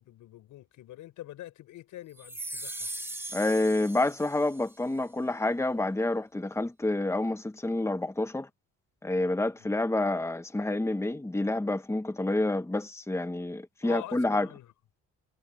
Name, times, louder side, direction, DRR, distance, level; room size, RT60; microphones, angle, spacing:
voice 1, 0.0-2.9 9.6-9.7 13.8-14.7, left 13 dB, 85° left, 4.9 m, -45 dB
sound 1, 2.2-4.7, right 1 dB, 5° right, 1.6 m, -39 dB
voice 2, 3.3-8.5 9.0-14.5, left 2 dB, 10° left, 1.6 m, -28 dB
cardioid pair, 90°, 30 cm